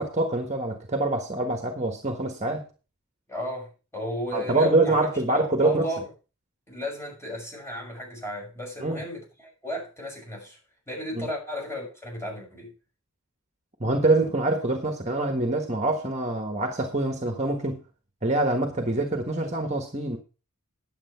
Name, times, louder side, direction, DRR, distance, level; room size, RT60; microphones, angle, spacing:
voice 1, 0.0-2.6 4.3-5.9 8.8-9.0 11.2-11.3 13.8-17.8 18.2-20.2, right 2 dB, 30° right, 1.5 m, -25 dB
voice 2, 3.3-5.0 5.3-6.1 6.7-10.6 10.9-12.7, left 1 dB, 10° left, 6.2 m, -34 dB
10.5 x 7.7 x 5.8 m
head